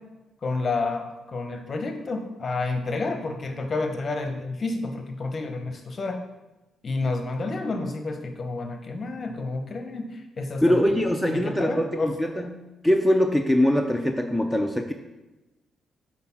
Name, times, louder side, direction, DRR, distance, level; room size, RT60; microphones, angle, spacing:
voice 1, 0.4-6.2 6.8-10.8 11.3-12.1, left 3 dB, 40° left, 5 dB, 0.9 m, -30 dB
voice 2, 10.6-12.5 12.8-14.9, left 1 dB, ahead, 4 dB, 0.5 m, -22 dB
6.7 x 4.3 x 5.7 m, 1.1 s
cardioid pair, 100°, 0 cm